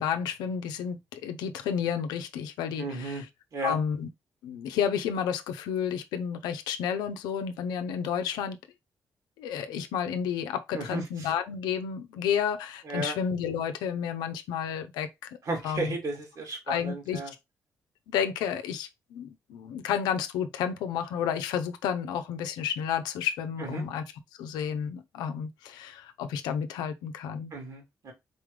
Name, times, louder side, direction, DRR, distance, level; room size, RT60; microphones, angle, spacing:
voice 1, 0.0-3.3 3.6-4.1 4.4-8.6 9.4-15.4 15.6-16.0 16.7-17.2 18.1-24.1 24.4-27.5, left 8 dB, 90° left, 0.6 m, -31 dB
voice 2, 2.8-3.2 3.5-3.8 10.7-11.0 12.9-13.2 15.5-17.3 23.6-23.8 27.5-28.1, right 2 dB, 65° right, 2.6 m, -34 dB
4.2 x 3.6 x 3.2 m
supercardioid pair, 50°, 7 cm